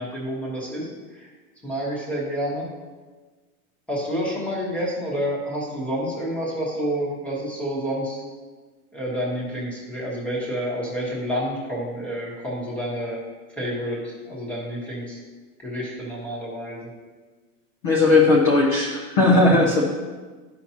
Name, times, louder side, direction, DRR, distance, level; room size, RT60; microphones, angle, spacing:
voice 1, 0.0-1.3 1.6-2.7 3.9-8.2 8.9-13.2 13.5-15.2 15.6-16.9, equal, 5° left, -5 dB, 1.1 m, -29 dB
voice 2, 17.8-19.8, left 2 dB, 25° left, -2 dB, 0.5 m, -17 dB
11.0 x 5.7 x 2.9 m, 1.4 s
supercardioid pair, 175°, 43 cm